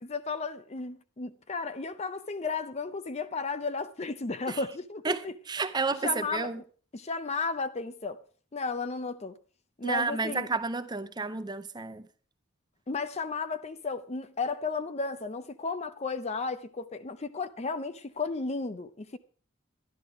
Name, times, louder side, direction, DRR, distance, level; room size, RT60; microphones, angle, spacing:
voice 1, 0.0-5.3 6.0-6.5 6.9-8.2 8.5-9.4 9.8-10.5 12.9-19.2, left 4 dB, 30° left, 0.6 m, -34 dB
voice 2, 5.0-6.6 9.8-12.0, right 4 dB, 20° right, 0.6 m, -31 dB
11.5 x 11.0 x 4.8 m
head